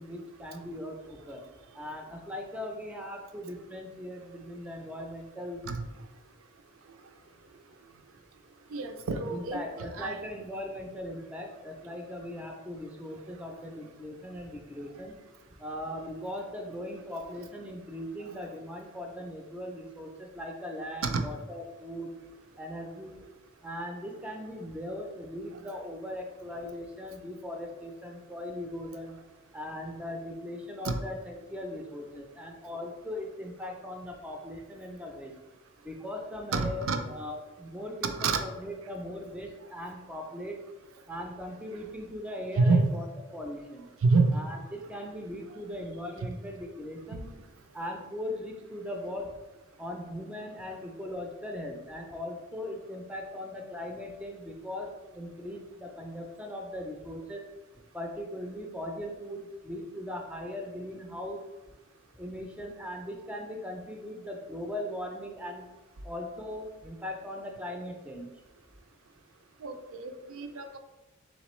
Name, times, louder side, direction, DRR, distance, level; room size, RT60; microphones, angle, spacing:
voice 1, 0.0-1.4 1.7-5.6 9.3-15.2 15.6-22.1 22.6-23.2 23.6-29.2 29.5-35.3 35.8-40.6 41.1-43.0 43.3-43.9 44.3-47.3 47.7-49.3 49.8-57.4 57.9-61.4 62.2-65.6 66.0-68.3, left 1 dB, 5° right, 2 dB, 0.3 m, -39 dB
voice 2, 8.7-10.2 21.0-21.2 30.8-31.0 36.5-37.0 38.0-38.4 42.6-42.8 44.0-44.3 69.6-70.8, right 3 dB, 75° right, 7 dB, 0.4 m, -27 dB
4.1 x 3.5 x 3.0 m, 1.1 s
head